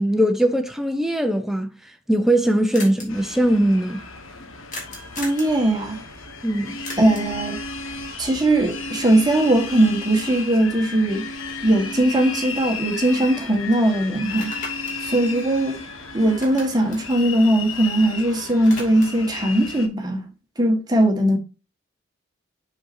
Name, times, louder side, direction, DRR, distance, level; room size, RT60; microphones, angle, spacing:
voice 1, 0.0-1.7 2.1-4.0 6.4-6.8, right 1 dB, ahead, 0.6 m, -20 dB
sound 1, 2.1-2.2 2.3-2.4 2.7-3.1 4.7-5.5 6.8-7.4 11.6-11.7 12.1-13.2 13.5-13.7 14.2-16.0 16.3-18.1 18.4-19.3, left 2 dB, 40° left, 2.7 m, -38 dB
sound 2, 3.1-19.9, left 4 dB, 80° left, 1.4 m, -34 dB
voice 2, 5.2-6.0 7.0-7.6 8.2-11.3 11.6-14.5 15.0-15.9 16.1-20.3 20.6-21.4, right 1 dB, 20° right, 1.5 m, -20 dB
7.5 x 6.3 x 2.7 m
head